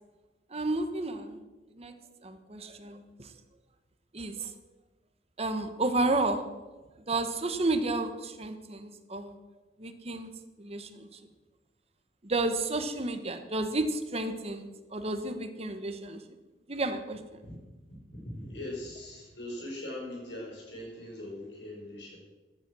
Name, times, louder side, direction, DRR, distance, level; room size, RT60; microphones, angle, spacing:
voice 1, 0.5-1.4 1.7-1.9 2.2-3.3 4.1-4.5 5.4-6.4 7.1-9.4 9.8-10.3 10.6-11.2 12.2-16.2 16.7-17.4, right 2 dB, 35° right, 7 dB, 1.3 m, -32 dB
voice 2, 17.9-22.2, left 1 dB, 75° left, -1 dB, 5.7 m, -41 dB
15.0 x 11.5 x 6.3 m, 1.2 s
head